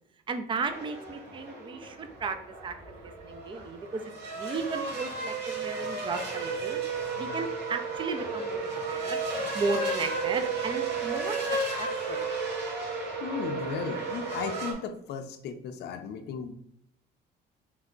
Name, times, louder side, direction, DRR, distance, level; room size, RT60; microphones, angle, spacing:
voice 1, 0.3-2.7 3.0-4.0 4.3-6.8 7.2-9.2 9.5-11.4 11.8-12.3, right 4 dB, 25° right, 8 dB, 0.5 m, -35 dB
sound 1, 0.6-14.7, right 3 dB, 70° right, 1.2 m, -33 dB
voice 2, 13.2-16.5, left 6 dB, 65° left, 6 dB, 0.5 m, -36 dB
3.3 x 3.1 x 3.8 m, 0.75 s
cardioid pair, 115°, 19 cm